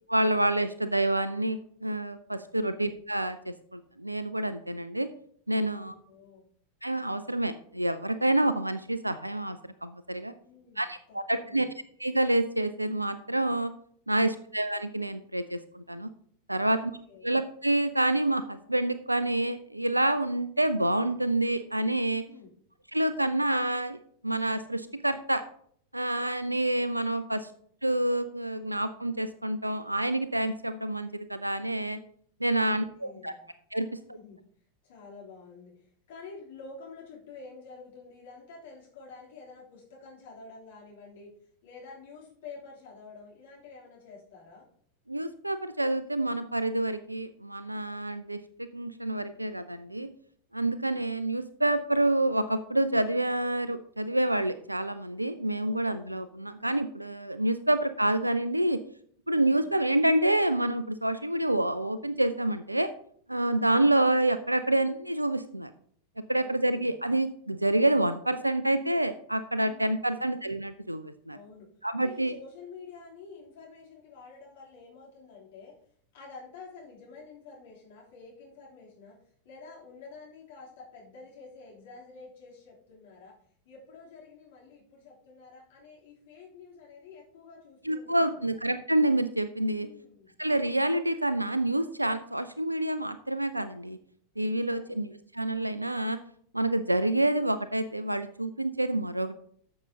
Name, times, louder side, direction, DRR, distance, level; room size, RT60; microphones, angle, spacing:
voice 1, 0.1-5.1 5.5-5.9 6.8-10.3 10.8-11.7 12.0-13.7 14.1-16.1 16.5-16.8 17.2-22.2 22.9-25.4 25.9-27.5 27.8-32.0 32.4-33.3 33.7-34.2 45.1-50.1 50.5-58.8 59.3-62.9 63.3-65.7 66.3-71.4 71.8-72.3 87.8-89.9 90.4-94.0 94.4-96.2 96.5-99.3, right 1 dB, 85° right, 13 dB, 0.4 m, -28 dB
voice 2, 5.6-6.5 10.4-11.7 16.6-17.3 22.3-22.5 32.6-33.5 33.8-34.4 34.8-41.3 41.6-44.7 50.7-51.0 55.6-56.3 57.6-57.7 59.4-59.7 63.4-63.7 66.4-67.0 69.6-70.3 71.3-71.7 71.9-75.8 76.1-79.2 79.4-83.4 83.6-88.6 89.8-90.3 94.7-95.0, left 4 dB, 55° left, -4 dB, 3.2 m, -49 dB
13.0 x 6.4 x 2.9 m, 0.62 s
figure-of-eight pair, 90°, 0 cm